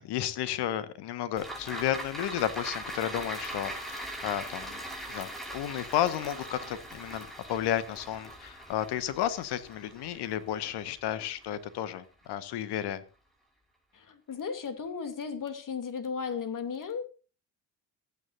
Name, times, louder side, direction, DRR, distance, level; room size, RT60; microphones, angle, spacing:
voice 1, 0.0-4.8 5.1-13.0, left 11 dB, 60° left, 14 dB, 1.6 m, -32 dB
sound 1, 1.4-11.9 12.2-12.3, right 1 dB, ahead, 5.3 m, -41 dB
voice 2, 13.9-17.1, left 6 dB, 45° left, 8 dB, 2.9 m, -35 dB
28.5 x 9.5 x 2.7 m, 0.35 s
figure-of-eight pair, 45°, 46 cm